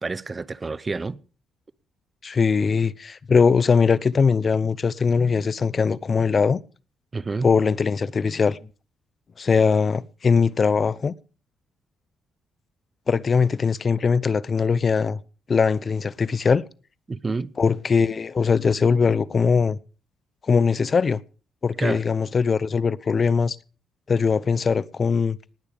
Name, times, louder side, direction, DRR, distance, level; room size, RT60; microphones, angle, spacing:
voice 1, 0.0-1.2 7.1-7.5 17.1-17.5 21.8-22.0, right 4 dB, 30° right, 0.7 m, -29 dB
voice 2, 2.2-6.6 7.4-8.6 9.4-11.1 13.1-15.2 15.5-16.6 17.6-19.8 20.5-21.2 21.6-23.6 24.1-25.4, left 5 dB, 40° left, 0.7 m, -21 dB
19.5 x 8.8 x 5.1 m
cardioid pair, 90°, 0 cm